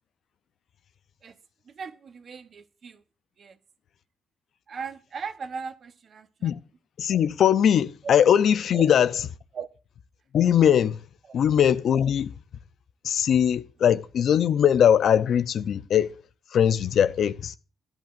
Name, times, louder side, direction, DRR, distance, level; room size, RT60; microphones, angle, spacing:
voice 1, 1.6-3.0 3.4-3.6 4.7-6.5 8.0-8.1 8.7-9.0 9.5-9.7 11.3-11.4, right 5 dB, 50° right, 0.9 m, -38 dB
voice 2, 7.0-9.1 10.3-11.0 11.3-12.4 13.0-16.2 16.5-17.5, left 9 dB, 65° left, 0.5 m, -21 dB
15.5 x 10.5 x 2.5 m
cardioid pair, 90°, 0 cm